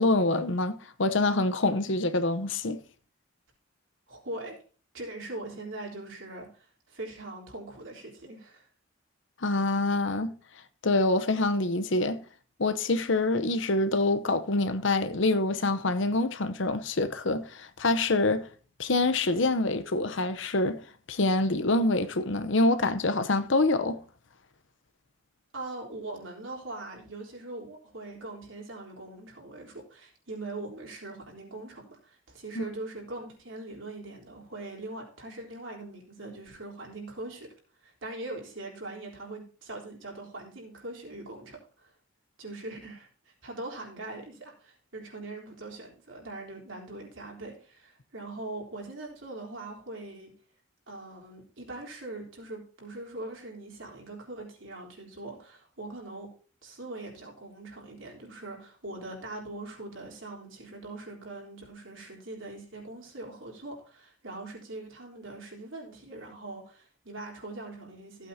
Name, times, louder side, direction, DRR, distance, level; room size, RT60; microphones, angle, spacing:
voice 1, 0.0-2.8 9.4-10.3 10.8-12.2 12.6-18.5 18.8-20.8 21.1-24.0 32.6-32.7, left 2 dB, 60° left, 0.8 m, -26 dB
voice 2, 4.1-4.6 4.9-8.7 25.5-37.5 37.8-41.9 42.4-50.3 50.9-56.3 56.6-68.3, right 2 dB, 65° right, 3.7 m, -41 dB
15.5 x 8.4 x 2.8 m
head